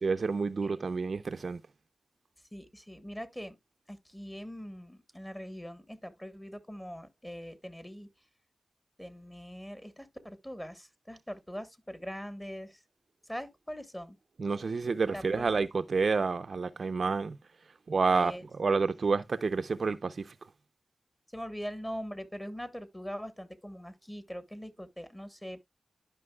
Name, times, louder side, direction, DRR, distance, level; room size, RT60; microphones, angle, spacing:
voice 1, 0.0-1.6 14.4-17.4 17.9-20.3, right 4 dB, 60° right, 0.5 m, -29 dB
voice 2, 2.5-3.6 3.9-8.1 9.0-12.8 13.3-14.2 15.1-15.6 18.1-18.4 21.3-25.6, equal, 10° left, 1.1 m, -42 dB
12.0 x 5.2 x 2.2 m
wide cardioid pair, 80°, 0 cm